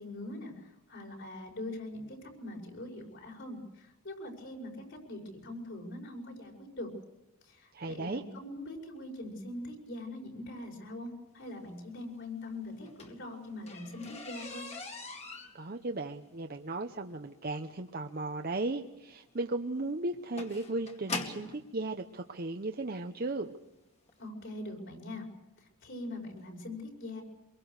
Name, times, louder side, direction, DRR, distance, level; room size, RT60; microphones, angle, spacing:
voice 1, 0.0-6.9 7.4-14.7 24.2-25.2 25.6-27.2, left 1 dB, 55° left, 1 dB, 5.8 m, -42 dB
voice 2, 7.7-8.2 15.5-23.5, right 2 dB, 45° right, 5 dB, 0.9 m, -36 dB
sound 1, 12.7-21.6 22.5-22.6 23.2-23.4 23.7-23.8 24.1-24.2, left 3 dB, 30° left, 2.3 m, -43 dB
25.0 x 23.0 x 6.5 m, 0.99 s
head